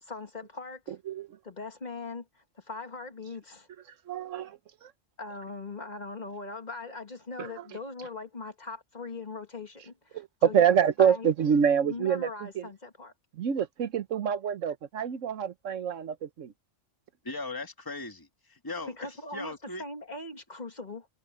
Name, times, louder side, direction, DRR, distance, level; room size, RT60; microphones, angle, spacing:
voice 1, 0.0-1.0 1.4-3.7 5.2-11.3 11.8-13.1 18.9-19.5 19.8-21.1, left 3 dB, 35° left, 1.7 m, -40 dB
voice 2, 4.1-4.9 7.4-7.5 10.1-12.7 13.3-16.5, right 8 dB, 80° right, 1.3 m, -26 dB
voice 3, 17.2-19.8, left 3 dB, 15° left, 1.8 m, -39 dB
omnidirectional pair, 1.3 m